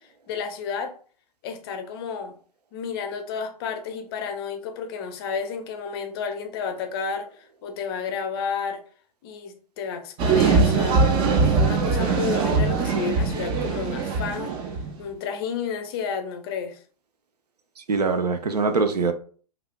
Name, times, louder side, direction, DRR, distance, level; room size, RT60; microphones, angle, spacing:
voice 1, 0.3-0.9 1.4-2.4 2.7-8.8 9.2-11.1 11.4-14.6 15.0-16.8, left 6 dB, 40° left, 0.5 m, -31 dB
sound 1, 10.2-14.9, right 4 dB, 25° right, 0.4 m, -21 dB
voice 2, 17.8-19.1, right 4 dB, 80° right, 0.5 m, -23 dB
3.3 x 2.4 x 2.2 m
figure-of-eight pair, 110°, 20 cm